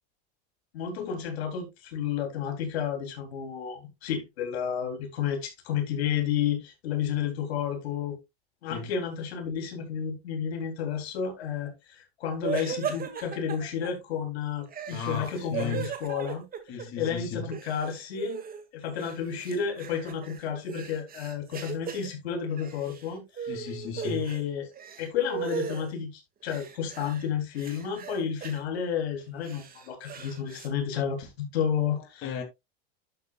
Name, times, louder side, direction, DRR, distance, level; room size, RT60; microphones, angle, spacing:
voice 1, 0.7-8.2 8.6-18.4 18.7-23.7 24.0-24.7 25.0-32.3, left 7 dB, 85° left, 3.8 m, -31 dB
sound 1, 12.4-13.9 14.7-17.1 17.4-18.6 19.0-22.1 22.5-23.1 23.4-24.4 24.7-25.9 26.5-27.3 27.6-28.6 29.2-30.7, right 7 dB, 30° right, 2.2 m, -38 dB
voice 2, 14.9-15.9 16.7-17.5 23.5-24.2 32.2-32.4, left 5 dB, 45° left, 2.8 m, -35 dB
12.0 x 7.0 x 2.4 m
supercardioid pair, 120°, 31 cm